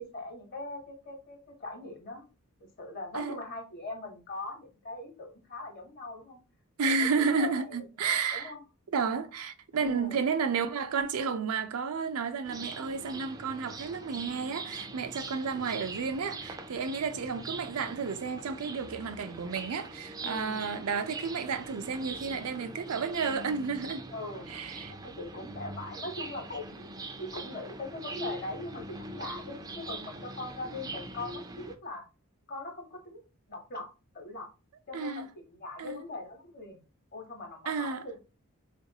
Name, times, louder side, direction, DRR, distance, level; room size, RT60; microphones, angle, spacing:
voice 1, 0.0-2.2 2.8-6.4 6.8-7.7 8.3-8.6 9.8-10.2 20.2-20.6 24.1-24.5 24.9-26.9 27.2-32.0 32.5-33.2 33.5-33.9 34.1-34.5 34.9-36.8 37.1-38.2, left 2 dB, 45° left, 1.0 m, -41 dB
voice 2, 6.8-8.5 8.9-24.1 24.5-24.9 34.9-35.3 35.8-36.0 37.7-38.1, right 5 dB, 85° right, 0.5 m, -32 dB
sound 1, 12.4-31.8, right 2 dB, 15° right, 0.4 m, -42 dB
3.8 x 2.4 x 2.8 m
head